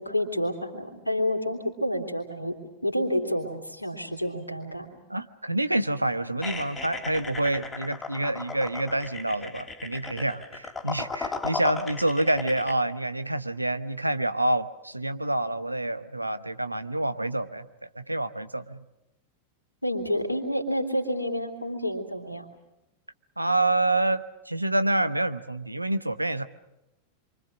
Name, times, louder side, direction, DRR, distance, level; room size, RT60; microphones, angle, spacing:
voice 1, 0.0-2.6 2.8-5.0 19.8-22.5, equal, 85° left, 5 dB, 3.2 m, -29 dB
voice 2, 5.1-18.8 23.4-26.4, right 1 dB, 85° right, 12 dB, 1.0 m, -27 dB
sound 1, 6.4-12.7, left 4 dB, 15° left, 2.9 m, -36 dB
27.0 x 24.5 x 6.3 m, 0.90 s
figure-of-eight pair, 90°, 0 cm